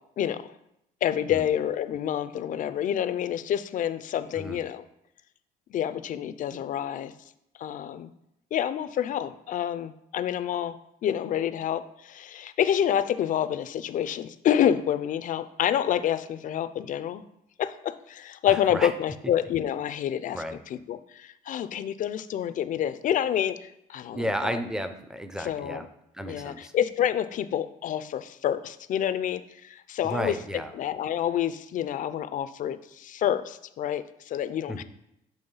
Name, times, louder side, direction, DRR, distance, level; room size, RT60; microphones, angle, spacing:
voice 1, 0.2-0.5 1.0-4.9 5.7-7.1 7.6-8.1 8.5-10.8 11.0-17.2 17.6-24.6 25.4-25.9 26.3-30.4 30.7-34.8, left 10 dB, 50° left, 12 dB, 0.4 m, -28 dB
voice 2, 18.5-18.9 20.3-20.6 24.1-25.9 26.2-26.7 30.0-30.7 34.7-34.8, equal, 5° right, 9 dB, 0.5 m, -32 dB
7.0 x 3.1 x 5.5 m, 0.82 s
cardioid pair, 110°, 17 cm